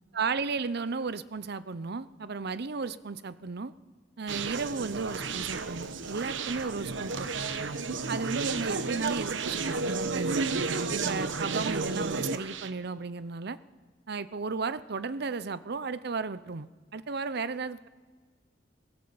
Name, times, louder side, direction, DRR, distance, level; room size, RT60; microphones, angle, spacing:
voice 1, 0.1-3.7 4.2-7.3 8.1-10.5 10.9-13.6 14.1-17.9, right 4 dB, 60° right, 15 dB, 0.7 m, -34 dB
Conversation, 4.3-12.7, right 4 dB, 85° right, 1.0 m, -32 dB
21.5 x 17.0 x 7.1 m, 1.5 s
head